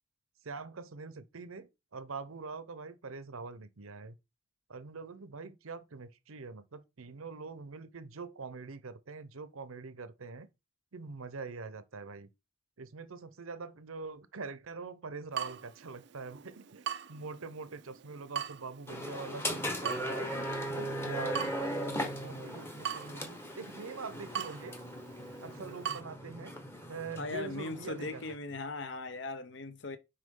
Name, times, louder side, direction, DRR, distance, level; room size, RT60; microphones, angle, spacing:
voice 1, 0.4-4.1 4.7-10.5 10.9-12.3 12.8-20.3 20.8-24.8 25.4-26.6 26.9-28.2 28.5-28.6, right 4 dB, 85° right, 0.8 m, -44 dB
Water tap faucet / Drip, 15.3-26.0, right 8 dB, 55° right, 0.4 m, -43 dB
sound 1, 18.9-28.3, equal, 10° left, 1.0 m, -38 dB
voice 2, 27.2-30.0, left 3 dB, 55° left, 0.8 m, -39 dB
6.4 x 4.8 x 3.7 m
head